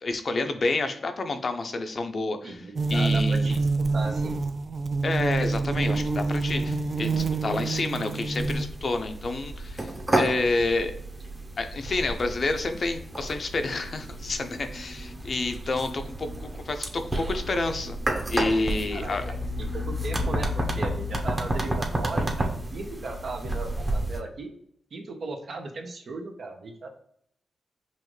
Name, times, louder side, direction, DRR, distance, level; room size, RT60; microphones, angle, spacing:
voice 1, 0.0-2.6 2.9-3.6 5.0-10.9 11.6-18.0 18.3-19.3, left 3 dB, 55° left, 7 dB, 0.6 m, -29 dB
voice 2, 2.4-4.3 18.9-19.5 19.7-24.5 24.9-27.0, right 3 dB, 65° right, 3 dB, 0.9 m, -37 dB
sound 1, 2.8-8.7, right 3 dB, 45° right, 0.4 m, -26 dB
sound 2, 8.4-24.2, right 1 dB, 25° right, 1.0 m, -31 dB
5.6 x 2.5 x 3.1 m, 0.68 s
cardioid pair, 60°, 0 cm